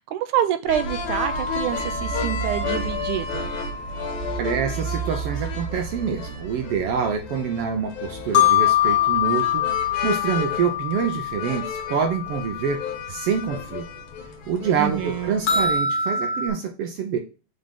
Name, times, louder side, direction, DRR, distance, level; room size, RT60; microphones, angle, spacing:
voice 1, 0.0-3.5 14.8-15.4, right 11 dB, 85° right, 2.1 m, -27 dB
sound 1, 0.7-15.8, left 1 dB, 90° left, 2.5 m, -32 dB
sound 2, 1.2-5.0 5.8-5.9 8.2-13.7 14.0-14.1 14.5-14.6 15.4-16.5, left 8 dB, 45° left, 1.9 m, -25 dB
voice 2, 4.4-12.8 13.1-13.9 14.5-17.2, right 7 dB, 70° right, 1.4 m, -26 dB
7.6 x 3.9 x 3.5 m
omnidirectional pair, 3.4 m